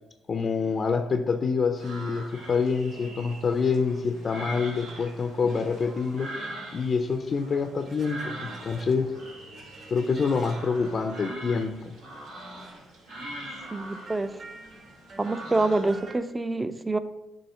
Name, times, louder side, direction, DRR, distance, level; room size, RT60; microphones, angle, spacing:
voice 1, 0.3-6.3 6.7-9.1 9.9-11.9, left 5 dB, 45° left, 6 dB, 0.5 m, -26 dB
sound 1, 1.8-16.1, right 1 dB, 90° right, 1.9 m, -42 dB
sound 2, 7.5-16.2, right 2 dB, 60° right, 2.3 m, -50 dB
voice 2, 13.7-14.4 15.2-17.0, right 2 dB, 20° right, 11 dB, 0.5 m, -26 dB
7.0 x 2.8 x 5.6 m, 0.99 s
supercardioid pair, 70°, 0 cm